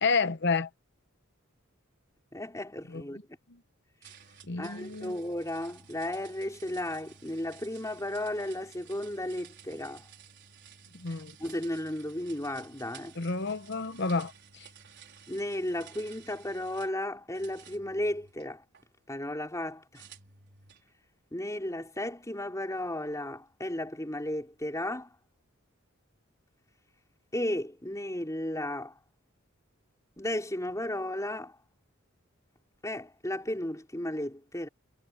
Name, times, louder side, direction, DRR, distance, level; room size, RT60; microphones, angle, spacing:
voice 1, 0.0-0.7 2.9-3.0 4.5-5.1 10.9-11.3 13.2-14.7, left 4 dB, 55° left, 1.0 m, -30 dB
voice 2, 2.3-3.2 4.6-10.0 11.4-13.2 15.3-18.6 19.1-20.0 21.3-25.1 27.3-29.0 30.2-31.6 32.8-34.7, left 1 dB, 15° left, 3.9 m, -34 dB
sound 1, 4.0-17.0 17.3-18.8 19.9-20.9, right 7 dB, 55° right, 4.9 m, -54 dB
head